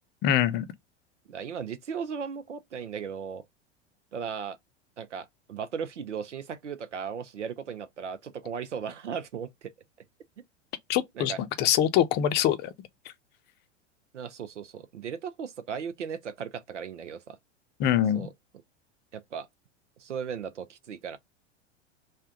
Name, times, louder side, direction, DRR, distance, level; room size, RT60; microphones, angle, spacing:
voice 1, 0.2-0.7 10.9-12.7 17.8-18.3, left 11 dB, 30° left, 0.6 m, -24 dB
voice 2, 1.3-3.4 4.1-4.6 5.0-9.7 11.2-11.4 14.1-17.4 18.1-18.3 19.1-19.5 20.0-21.2, right 7 dB, 80° right, 0.6 m, -36 dB
3.3 x 2.2 x 3.7 m
figure-of-eight pair, 90°, 35 cm